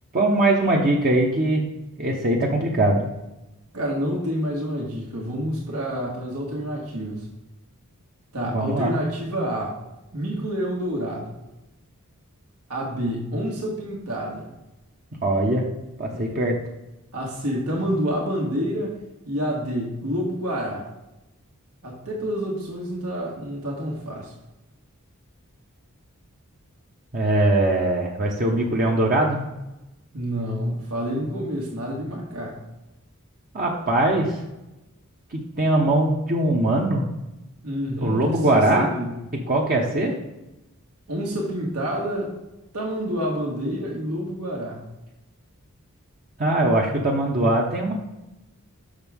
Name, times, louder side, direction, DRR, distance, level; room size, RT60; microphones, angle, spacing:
voice 1, 0.1-1.7 2.0-3.0 8.5-8.9 15.2-15.6 16.0-16.5 27.1-29.4 33.5-34.4 35.3-37.1 38.0-38.9 39.5-40.2 46.4-47.9, right 1 dB, 40° right, -2 dB, 0.9 m, -21 dB
voice 2, 3.7-7.2 8.3-9.8 10.1-11.3 12.7-14.5 16.1-16.4 17.1-19.0 19.3-20.9 21.8-24.3 30.1-32.6 37.6-39.2 41.1-42.3 42.7-44.8, equal, 80° right, -3 dB, 1.6 m, -28 dB
6.5 x 6.2 x 3.5 m, 0.97 s
head